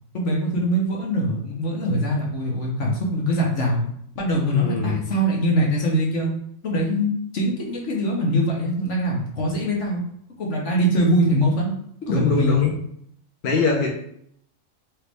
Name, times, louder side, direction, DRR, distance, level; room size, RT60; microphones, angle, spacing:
voice 1, 0.1-3.8 4.1-6.3 6.6-10.0 10.4-11.7 12.0-12.6, equal, 70° left, -2 dB, 1.4 m, -22 dB
voice 2, 4.5-5.0 12.1-12.7 13.4-13.9, left 4 dB, 50° left, -1 dB, 0.9 m, -23 dB
4.5 x 3.0 x 3.4 m, 0.69 s
omnidirectional pair, 1.3 m